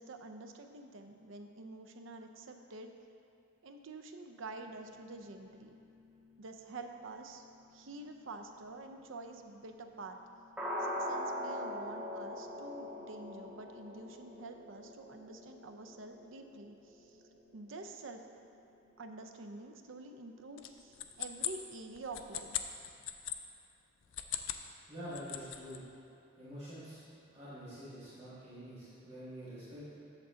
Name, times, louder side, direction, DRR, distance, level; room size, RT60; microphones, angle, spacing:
voice 1, 0.0-3.0 3.6-5.8 6.4-7.4 7.7-10.2 10.8-17.2 17.5-18.2 19.0-22.6, right 3 dB, 65° right, 5 dB, 0.6 m, -48 dB
sound 1, 4.6-19.4 19.7-19.9 20.1-20.2 20.6-20.7 21.1-21.2 21.4-21.5, equal, 5° right, 0.9 m, -45 dB
sound 2, 20.6-23.4 24.0-24.7 25.0-25.8, left 12 dB, 60° left, 0.4 m, -39 dB
voice 2, 24.9-25.8 26.4-27.0 27.3-29.9, equal, 30° right, -12 dB, 1.8 m, -46 dB
8.2 x 6.7 x 3.8 m, 2.6 s
head